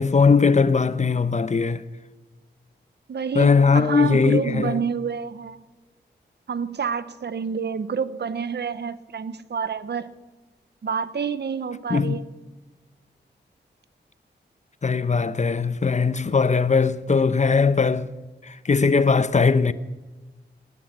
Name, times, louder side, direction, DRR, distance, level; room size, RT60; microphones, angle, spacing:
voice 1, 0.0-1.8 3.3-4.8 11.9-12.2 14.8-18.1 18.4-19.7, left 5 dB, 40° left, 0.8 m, -20 dB
voice 2, 3.1-5.6 6.5-10.1 10.8-12.2, right 6 dB, 65° right, 0.9 m, -28 dB
19.5 x 12.0 x 6.2 m
wide cardioid pair, 75°, 19 cm